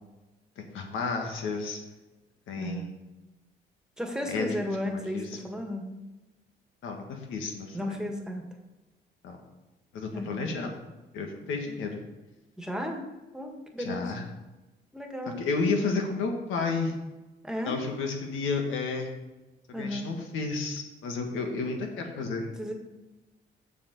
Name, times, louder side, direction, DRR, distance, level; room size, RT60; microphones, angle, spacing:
voice 1, 0.6-1.8 2.5-2.9 4.3-4.5 4.8-5.2 6.8-8.0 9.2-9.4 9.9-10.8 11.1-12.0 13.8-14.2 15.4-16.9 17.6-19.1 19.8-22.5, left 4 dB, 85° left, 3 dB, 1.8 m, -31 dB
voice 2, 2.6-2.9 4.0-5.8 7.7-8.5 10.1-10.5 12.6-13.0 13.3-14.0 14.9-15.4 17.4-17.9 19.7-20.1 22.6-22.7, equal, 5° right, 2 dB, 1.8 m, -34 dB
7.2 x 7.1 x 5.4 m, 1.1 s
cardioid pair, 90°, 20 cm